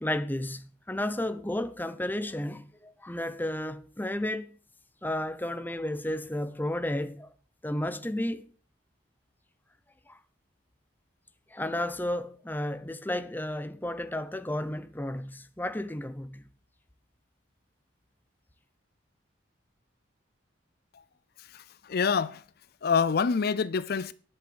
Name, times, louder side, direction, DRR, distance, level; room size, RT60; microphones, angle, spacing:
voice 1, 0.0-4.5 5.0-7.3 7.6-8.4 10.1-10.2 11.5-16.5, left 1 dB, 10° left, 0.8 m, -32 dB
voice 2, 21.4-22.4 22.8-24.1, left 5 dB, 55° left, 0.5 m, -27 dB
10.5 x 7.3 x 7.0 m
head